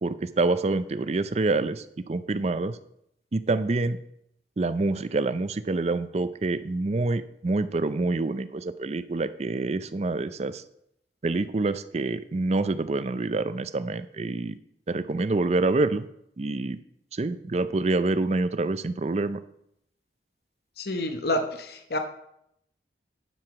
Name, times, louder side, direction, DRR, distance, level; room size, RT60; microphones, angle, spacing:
voice 1, 0.0-2.8 3.3-4.0 4.6-10.6 11.2-14.6 14.9-16.1 16.4-16.8 17.1-19.4, right 3 dB, 35° right, 13 dB, 0.4 m, -26 dB
voice 2, 20.8-22.0, left 1 dB, 60° left, 6 dB, 0.9 m, -28 dB
11.0 x 4.8 x 6.0 m, 0.77 s
head